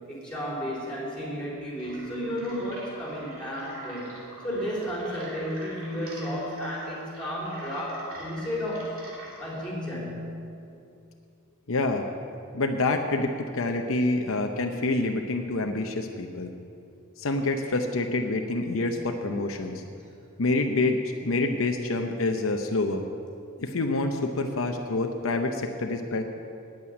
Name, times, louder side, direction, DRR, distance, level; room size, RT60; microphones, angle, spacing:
voice 1, 0.1-8.9 9.4-10.4, equal, 5° left, -6 dB, 3.9 m, -33 dB
sound 1, 1.7-9.7, right 1 dB, 70° right, 2.9 m, -45 dB
voice 2, 11.7-12.1 12.5-16.5 17.2-19.8 20.4-23.0 23.6-26.2, left 2 dB, 65° left, 4 dB, 0.7 m, -27 dB
9.0 x 8.6 x 9.5 m, 2.5 s
head